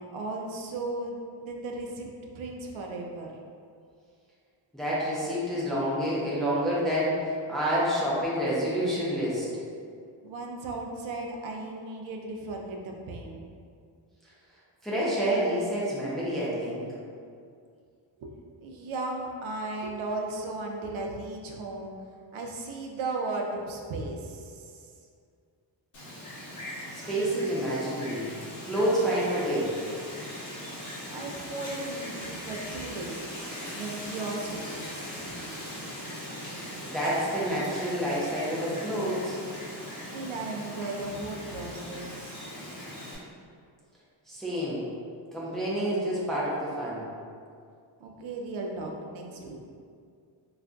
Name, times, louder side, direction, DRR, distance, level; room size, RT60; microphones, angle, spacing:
voice 1, 0.0-3.4 10.2-13.5 18.2-18.3 18.6-21.9 22.3-24.8 31.1-33.2 33.7-35.2 40.1-42.5 48.0-49.7, right 2 dB, 80° right, 1 dB, 0.5 m, -36 dB
voice 2, 4.7-9.5 14.8-16.9 26.9-28.3 28.7-29.7 36.8-39.4 44.3-44.8 45.3-47.0, equal, ahead, -8 dB, 0.4 m, -28 dB
Wind, 25.9-43.1, equal, 40° left, 0.7 m, -40 dB
2.4 x 2.2 x 3.7 m, 2.2 s
wide cardioid pair, 155°, 47 cm